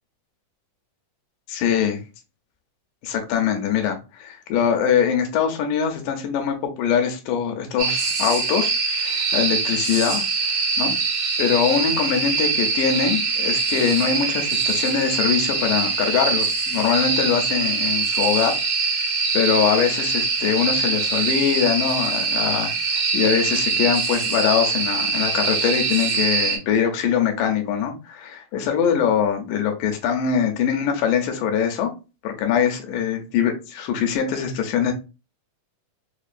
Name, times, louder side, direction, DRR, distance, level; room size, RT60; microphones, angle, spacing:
voice 1, 1.5-2.0 3.0-10.3 10.8-10.9 11.4-18.6 18.8-31.9 32.2-34.9, left 8 dB, 80° left, 4 dB, 2.2 m, -23 dB
sound 1, 7.8-26.6, right 4 dB, 65° right, 1.3 m, -23 dB
5.3 x 2.3 x 2.4 m, 0.30 s
omnidirectional pair, 3.9 m